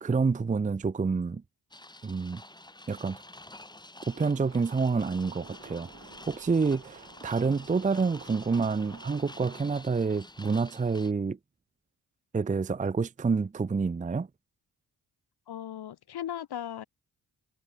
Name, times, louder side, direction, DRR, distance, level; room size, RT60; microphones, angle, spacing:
voice 1, 0.0-1.4 2.0-2.4 2.9-3.2 4.1-5.9 6.3-11.4 12.3-14.3, right 4 dB, 20° right, 0.6 m, -28 dB
sound 1, 1.7-11.1, left 2 dB, 10° left, 1.8 m, -49 dB
sound 2, 4.0-9.6, right 5 dB, 45° right, 5.3 m, -53 dB
voice 2, 15.5-16.8, left 10 dB, 75° left, 2.4 m, -37 dB
cardioid pair, 65°, 39 cm